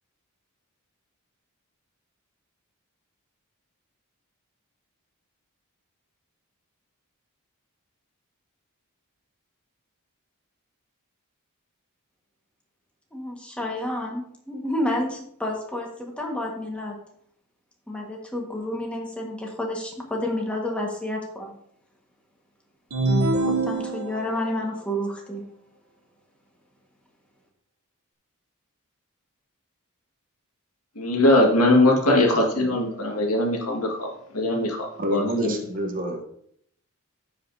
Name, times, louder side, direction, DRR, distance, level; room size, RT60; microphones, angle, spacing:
voice 1, 13.1-16.9 17.9-21.5 23.4-25.4, left 1 dB, 5° left, -1 dB, 1.5 m, -30 dB
sound 1, 22.9-24.5, right 2 dB, 80° right, 0.9 m, -24 dB
voice 2, 31.0-35.6, left 1 dB, 80° left, 0 dB, 1.8 m, -21 dB
voice 3, 32.3-32.8 35.0-36.3, equal, 40° right, 4 dB, 1.0 m, -29 dB
15.0 x 5.1 x 2.7 m, 0.68 s
head